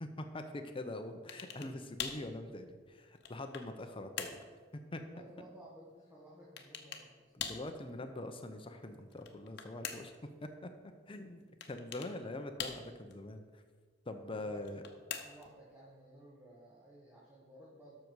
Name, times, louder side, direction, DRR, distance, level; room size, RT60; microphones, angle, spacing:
voice 1, 0.0-4.4 4.7-5.0 7.3-10.1 10.4-10.7 11.1-13.6 14.1-14.8, left 2 dB, 30° left, 7 dB, 0.6 m, -43 dB
sound 1, 1.3-1.7 2.0-2.3 2.9-3.7 4.2-4.5 6.6-7.1 7.4-7.7 9.1-10.2 11.6-12.1 12.6-13.1 14.6-15.5, left 7 dB, 60° left, 1.0 m, -43 dB
voice 2, 5.0-7.3 14.2-17.9, right 1 dB, 10° right, -5 dB, 1.5 m, -56 dB
12.5 x 6.5 x 4.7 m, 1.5 s
head